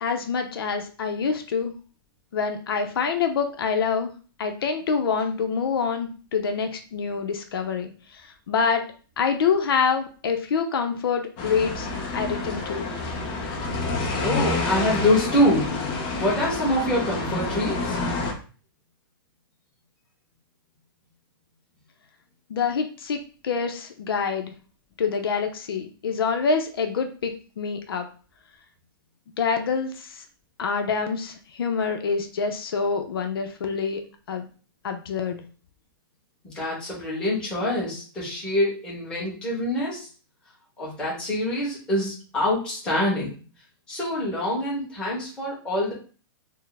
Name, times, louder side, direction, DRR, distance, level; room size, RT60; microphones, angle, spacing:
voice 1, 0.0-1.7 2.3-4.1 4.4-8.8 9.2-11.9 12.1-12.9 22.5-24.5 25.0-28.1 29.4-30.2 30.6-34.0 34.3-34.5 34.8-35.4, left 5 dB, 80° left, 5 dB, 0.6 m, -26 dB
sound 1, 11.4-18.3, left 3 dB, 25° left, 0.6 m, -28 dB
voice 2, 14.2-18.0 36.4-40.1 40.8-43.4 43.9-45.9, left 1 dB, 5° left, -7 dB, 1.1 m, -25 dB
4.3 x 2.0 x 3.3 m, 0.38 s
hypercardioid pair, 175°, 12 cm